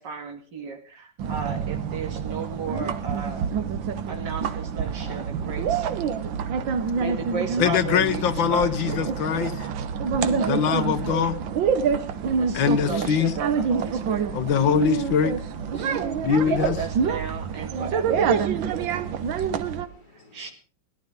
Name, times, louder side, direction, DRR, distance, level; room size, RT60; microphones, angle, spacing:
voice 1, 0.0-3.5 4.1-5.9 7.0-8.9 10.2-11.1 12.3-14.4 16.4-18.6 20.3-20.5, right 4 dB, 65° right, 2.8 m, -35 dB
sound 1, 1.2-19.9, right 6 dB, 90° right, 1.8 m, -27 dB
voice 2, 7.6-9.7 10.5-11.3 12.5-13.3 14.3-15.3 16.2-16.8, left 7 dB, 85° left, 1.8 m, -22 dB
voice 3, 12.2-13.1 15.6-16.8 18.9-20.5, left 1 dB, 70° left, 6.7 m, -51 dB
17.5 x 12.0 x 5.2 m
omnidirectional pair, 2.0 m